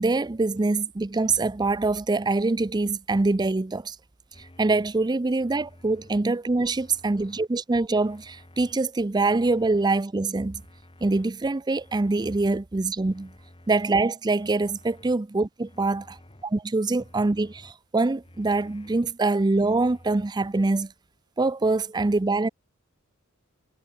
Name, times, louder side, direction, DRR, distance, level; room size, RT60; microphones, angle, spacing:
voice 1, 0.0-4.0 4.6-10.6 11.0-13.3 13.7-16.1 16.5-20.9 21.4-22.5, right 3 dB, 20° right, 0.4 m, -24 dB
sound 1, 4.3-4.9 5.4-6.2 6.7-7.5 8.0-8.7 9.2-10.0 10.5-11.3 11.8-12.6 13.1-13.9 14.4-15.2 15.7-16.4 16.9-17.7 18.2-19.0 19.5-20.3, left 1 dB, 25° left, 2.6 m, -52 dB
head